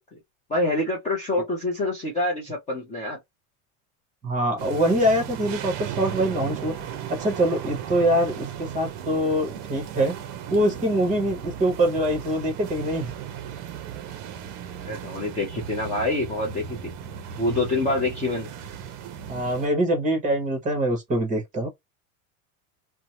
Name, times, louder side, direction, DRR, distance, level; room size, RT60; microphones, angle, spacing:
voice 1, 0.5-3.2 14.8-16.8 17.4-18.5, left 2 dB, 15° left, 0.6 m, -26 dB
voice 2, 4.2-6.7 7.1-10.1 10.5-13.1 19.3-21.7, right 1 dB, 15° right, 1.0 m, -24 dB
sound 1, 4.6-19.7, right 9 dB, 40° right, 0.6 m, -36 dB
2.6 x 2.1 x 2.9 m
cardioid pair, 165°, 43 cm